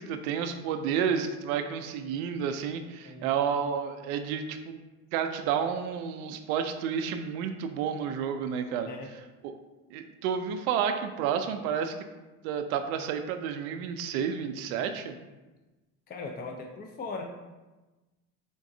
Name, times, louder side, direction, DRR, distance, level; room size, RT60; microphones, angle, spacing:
voice 1, 0.0-4.8 5.1-8.9 9.4-9.5 9.9-12.1 12.4-15.1, right 7 dB, 85° right, 8 dB, 0.5 m, -30 dB
voice 2, 16.1-17.2, left 3 dB, 25° left, 2 dB, 0.5 m, -39 dB
3.9 x 3.6 x 2.6 m, 1.1 s
supercardioid pair, 85°, 42 cm